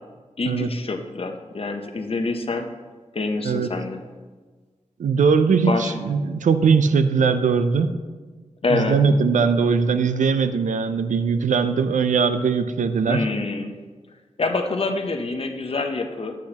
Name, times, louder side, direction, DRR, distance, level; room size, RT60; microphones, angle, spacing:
voice 1, 0.4-2.7 3.1-4.0 5.7-5.9 8.6-9.0 13.1-13.7 14.4-16.4, left 3 dB, 50° left, 5 dB, 0.8 m, -26 dB
voice 2, 5.0-7.9 8.7-13.2, right 5 dB, 85° right, 10 dB, 0.5 m, -20 dB
8.3 x 8.2 x 2.9 m, 1.4 s
wide cardioid pair, 70°, 13 cm